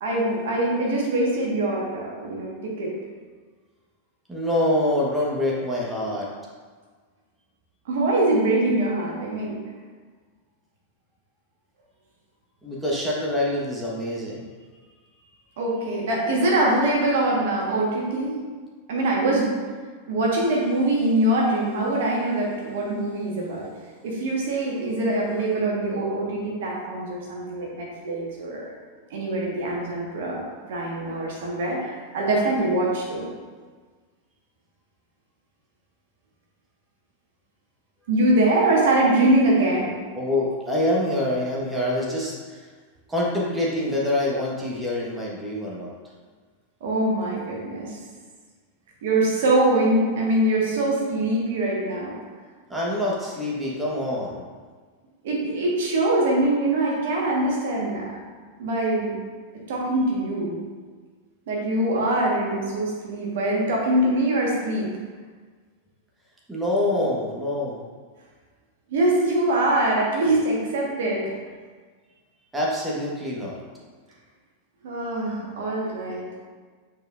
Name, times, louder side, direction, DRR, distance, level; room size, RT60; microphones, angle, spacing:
voice 1, 0.0-2.9 7.8-9.6 15.6-18.4 18.9-19.5 20.1-23.7 24.0-28.6 29.1-30.4 30.7-33.3 38.1-40.0 46.8-48.0 49.0-52.1 55.2-58.1 58.6-59.2 59.7-60.6 61.5-64.9 68.9-71.4 74.8-76.2, right 1 dB, 55° right, -3 dB, 1.3 m, -23 dB
voice 2, 4.3-6.3 12.6-14.5 40.1-42.7 43.1-45.9 52.7-54.4 66.5-67.8 72.5-73.6, left 1 dB, 10° right, -4 dB, 1.3 m, -25 dB
8.6 x 4.5 x 2.5 m, 1.5 s
figure-of-eight pair, 90°, 0 cm